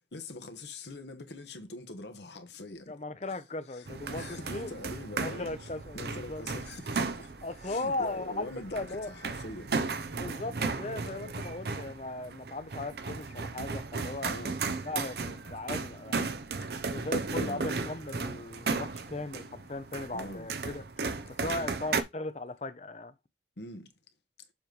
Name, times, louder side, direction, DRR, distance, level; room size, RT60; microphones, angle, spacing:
voice 1, 0.0-2.9 3.7-7.3 7.6-9.7 14.3-14.6 17.4-17.7 20.1-20.5 21.4-21.8 23.6-23.9, left 2 dB, 70° left, 1.2 m, -44 dB
voice 2, 2.9-4.7 5.2-6.5 7.4-9.1 10.1-14.3 14.8-16.3 16.9-20.8 21.4-23.1, left 2 dB, 35° left, 0.6 m, -37 dB
sound 1, 3.9-22.0, right 4 dB, 60° right, 0.6 m, -35 dB
7.2 x 3.1 x 5.2 m
head